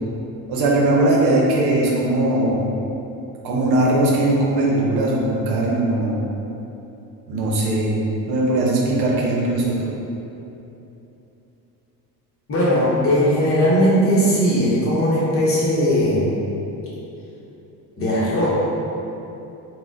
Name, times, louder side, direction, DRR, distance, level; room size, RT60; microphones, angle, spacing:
voice 1, 0.5-2.6 3.4-6.2 7.3-8.0 8.3-9.9, right 2 dB, 80° right, -4 dB, 0.8 m, -19 dB
voice 2, 12.5-16.2 18.0-18.5, equal, 35° left, -8 dB, 0.8 m, -18 dB
4.1 x 2.1 x 2.5 m, 3.0 s
cardioid pair, 160°, 39 cm